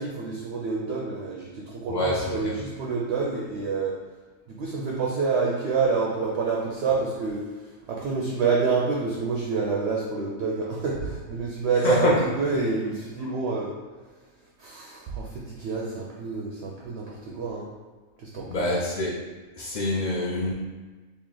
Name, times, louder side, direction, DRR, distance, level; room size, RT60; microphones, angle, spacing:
voice 1, 0.0-3.9 4.5-7.4 7.9-12.1 12.4-13.7 14.6-17.7 18.2-18.7, right 4 dB, 65° right, -3 dB, 0.7 m, -28 dB
voice 2, 1.9-2.5 11.8-12.2 18.5-19.1 19.6-20.5, left 1 dB, 80° left, -5 dB, 0.4 m, -25 dB
3.1 x 2.7 x 3.8 m, 1.3 s
omnidirectional pair, 1.4 m